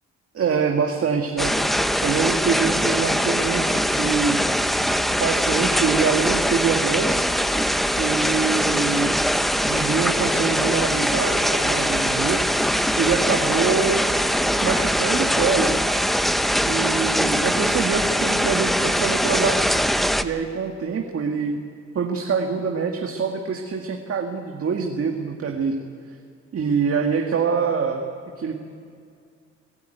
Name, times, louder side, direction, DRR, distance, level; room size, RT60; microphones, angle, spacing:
voice 1, 0.3-1.5 2.0-4.4 5.2-7.3 8.0-9.2 9.7-12.4 13.0-14.0 14.6-15.8 16.7-19.6 20.2-21.6 21.9-25.8 26.5-28.0 28.4-28.6, right 5 dB, 50° right, 2 dB, 1.9 m, -24 dB
sound 1, 1.4-20.2, equal, ahead, 0.9 m, -22 dB
26.5 x 15.5 x 9.3 m, 2.2 s
cardioid pair, 90°, 30 cm